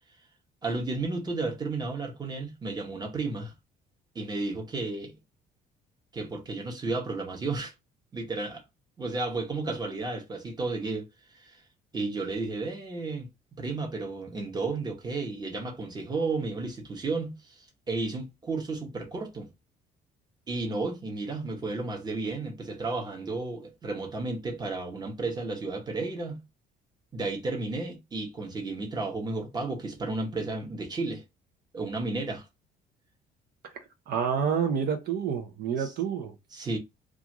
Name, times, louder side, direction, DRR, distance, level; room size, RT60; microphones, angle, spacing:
voice 1, 0.6-3.5 4.1-5.1 6.1-7.7 8.1-8.6 9.0-11.1 11.3-11.6 11.9-13.3 13.6-17.6 17.9-19.5 20.5-26.4 27.1-31.2 31.7-32.4 35.8-35.9 36.5-36.8, right 3 dB, 25° right, 0.9 m, -33 dB
voice 2, 34.1-36.3, right 7 dB, 65° right, 0.6 m, -28 dB
2.4 x 2.4 x 2.9 m
cardioid pair, 110°, 17 cm